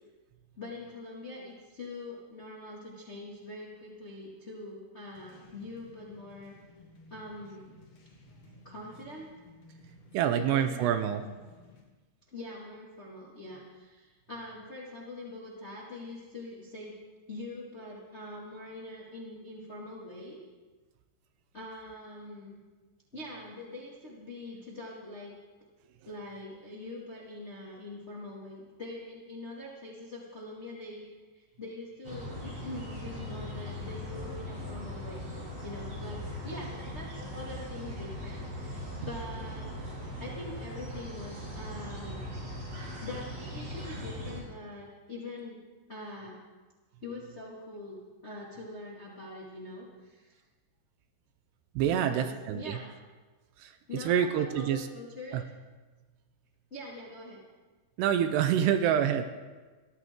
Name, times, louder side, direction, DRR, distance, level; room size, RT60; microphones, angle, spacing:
voice 1, 0.6-6.6 7.1-7.8 8.6-9.3 10.4-11.0 12.3-16.9 17.3-20.4 21.5-22.6 23.1-25.3 26.0-31.0 31.3-35.3 35.6-39.7 40.2-42.4 42.8-45.6 45.9-46.4 47.0-50.4 51.8-52.9 53.9-55.4 56.7-57.4, left 2 dB, 90° left, -4 dB, 0.6 m, -43 dB
sound 1, 5.1-11.8, left 3 dB, 45° left, 3.2 m, -57 dB
voice 2, 10.1-11.2 51.8-52.8 53.6-54.9 55.3-55.4 58.0-59.2, right 9 dB, 80° right, 9 dB, 2.4 m, -27 dB
sound 2, 32.0-44.4, left 1 dB, 30° right, 3.4 m, -40 dB
22.5 x 14.5 x 3.7 m, 1.3 s
omnidirectional pair, 5.5 m